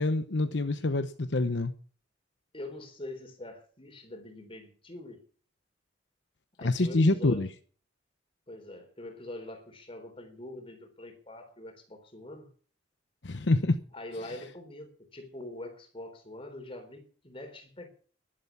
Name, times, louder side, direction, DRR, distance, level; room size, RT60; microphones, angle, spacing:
voice 1, 0.0-1.7 6.6-7.5 13.2-13.8, left 2 dB, 70° left, 0.9 m, -26 dB
voice 2, 2.5-5.3 6.6-7.5 8.5-12.5 13.9-17.9, left 1 dB, 30° left, 3.7 m, -44 dB
12.0 x 11.5 x 7.1 m
head